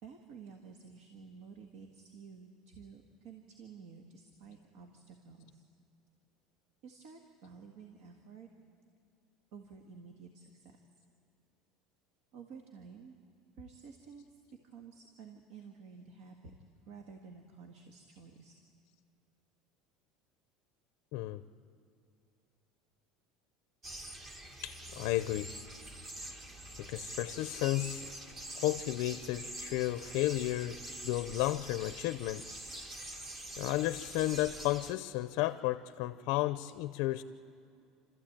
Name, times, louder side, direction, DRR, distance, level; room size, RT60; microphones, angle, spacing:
voice 1, 0.0-5.6 6.8-8.5 9.5-10.8 12.3-13.2 13.6-16.5 16.9-18.5, right 5 dB, 65° right, 4 dB, 1.8 m, -52 dB
voice 2, 21.1-21.4 24.6-25.5 26.8-28.1 28.6-32.5 33.6-37.2, left 16 dB, 65° left, 13 dB, 0.5 m, -33 dB
sound 1, 23.8-34.9, right 1 dB, 25° right, 1.5 m, -45 dB
29.5 x 13.5 x 8.8 m, 2.5 s
cardioid pair, 160°, 0 cm